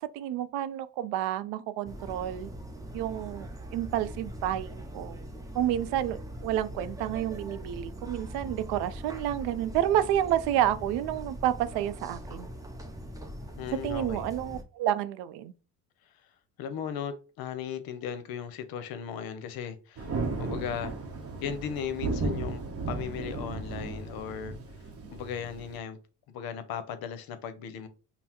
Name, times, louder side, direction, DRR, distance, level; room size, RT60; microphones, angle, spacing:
voice 1, 0.0-2.5 2.9-3.5 3.7-5.2 5.5-12.5 13.8-15.5, right 11 dB, 70° right, 0.5 m, -30 dB
sound 1, 1.8-14.6, equal, 10° right, 0.6 m, -41 dB
voice 2, 13.6-14.3 16.6-20.9 21.4-22.6 22.9-24.6 25.1-26.0 26.3-27.9, left 8 dB, 60° left, 0.7 m, -37 dB
Thunder, 20.0-25.8, right 3 dB, 35° right, 0.8 m, -35 dB
5.4 x 2.1 x 2.9 m
cardioid pair, 105°, 41 cm